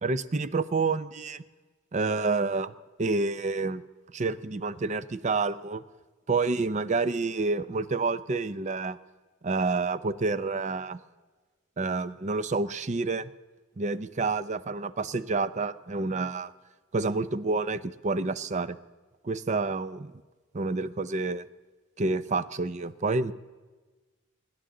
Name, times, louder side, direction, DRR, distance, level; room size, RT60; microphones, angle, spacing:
voice 1, 0.0-1.4 1.9-2.7 3.0-3.8 4.1-5.8 6.3-9.0 9.4-11.0 11.8-13.3 13.8-16.5 16.9-18.8 19.2-20.1 20.5-21.4 22.0-23.3, right 3 dB, 35° right, 15 dB, 0.5 m, -28 dB
27.0 x 11.5 x 3.8 m, 1.3 s
head